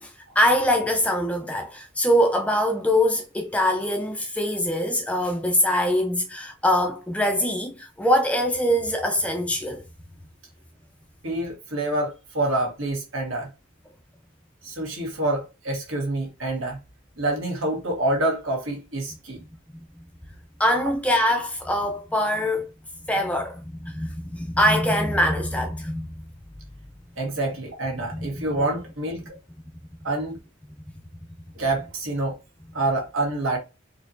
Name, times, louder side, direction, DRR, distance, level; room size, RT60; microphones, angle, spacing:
voice 1, 0.0-9.8 19.7-19.8 20.6-22.7 23.1-26.1 28.1-28.3, equal, 5° left, 0.5 m, -23 dB
voice 2, 11.2-13.5 14.6-16.8 17.2-19.4 27.2-29.3 30.0-30.4 31.5-32.4 32.7-33.6, right 2 dB, 75° right, 1.6 m, -27 dB
4.2 x 2.8 x 2.7 m
head